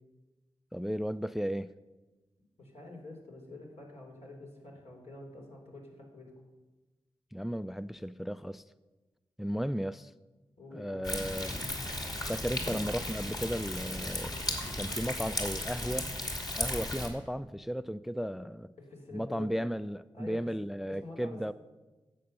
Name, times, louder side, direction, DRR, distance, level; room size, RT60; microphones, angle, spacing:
voice 1, 0.7-1.7 7.3-8.6 9.4-10.1 10.7-11.7 12.3-14.4 14.8-16.1 16.5-18.7 19.1-21.5, equal, ahead, 15 dB, 0.3 m, -35 dB
voice 2, 2.6-6.3 10.6-11.1 18.3-18.4 18.8-19.5 20.1-20.5 20.9-21.5, left 2 dB, 70° left, -1 dB, 3.3 m, -47 dB
Thunder, 11.0-17.1, left 1 dB, 35° left, 2.6 m, -35 dB
10.5 x 7.8 x 6.6 m, 1.2 s
cardioid pair, 45°, 11 cm